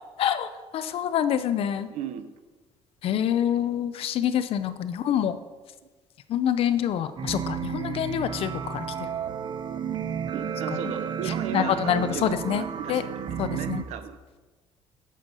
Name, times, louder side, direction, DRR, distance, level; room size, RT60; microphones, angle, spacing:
voice 1, 0.2-1.9 3.0-5.4 6.3-9.2 10.7-10.9 11.2-13.0 13.4-13.8, left 9 dB, 55° left, 12 dB, 0.6 m, -26 dB
voice 2, 1.9-2.3 10.3-14.4, right 9 dB, 85° right, 10 dB, 0.8 m, -36 dB
sound 1, 7.2-13.8, right 8 dB, 40° right, 0.6 m, -32 dB
9.0 x 6.5 x 5.4 m, 1.3 s
cardioid pair, 145°, 11 cm